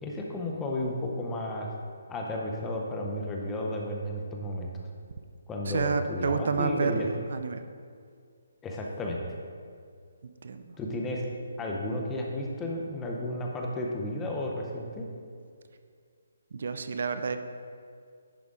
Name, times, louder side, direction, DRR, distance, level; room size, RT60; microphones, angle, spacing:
voice 1, 0.0-1.7 2.1-4.9 5.5-7.1 8.6-9.4 10.8-11.2 11.6-15.0, left 1 dB, 10° left, -1 dB, 0.6 m, -33 dB
voice 2, 5.7-7.6 10.4-10.7 16.5-17.4, right 4 dB, 55° right, 9 dB, 0.4 m, -29 dB
10.5 x 4.9 x 3.6 m, 2.2 s
hypercardioid pair, 175°, 0 cm